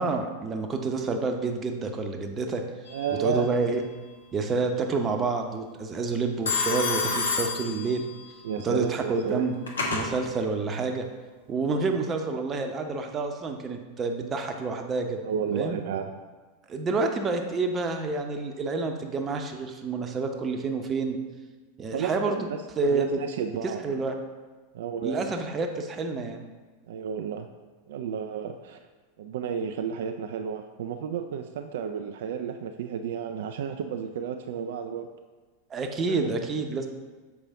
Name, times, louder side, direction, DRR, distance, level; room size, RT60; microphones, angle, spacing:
voice 1, 0.0-2.6 3.2-3.8 4.3-8.1 8.6-9.5 9.9-11.1 11.5-15.2 15.5-15.8 16.7-21.2 21.8-22.5 22.8-23.2 23.8-24.2 25.0-26.4 35.7-36.9, right 4 dB, 25° right, 4 dB, 0.8 m, -28 dB
Telephone, 2.9-3.4 6.5-8.3 9.3-10.1, left 4 dB, 70° left, 1.1 m, -29 dB
voice 2, 2.9-3.5 8.4-9.5 11.7-11.8 15.2-16.1 21.9-22.5 22.9-23.8 24.7-25.3 26.9-27.5 27.9-28.8 29.2-35.1 36.1-36.3, right 7 dB, 60° right, 6 dB, 0.4 m, -32 dB
7.1 x 4.8 x 3.7 m, 1.3 s
figure-of-eight pair, 90°, 0 cm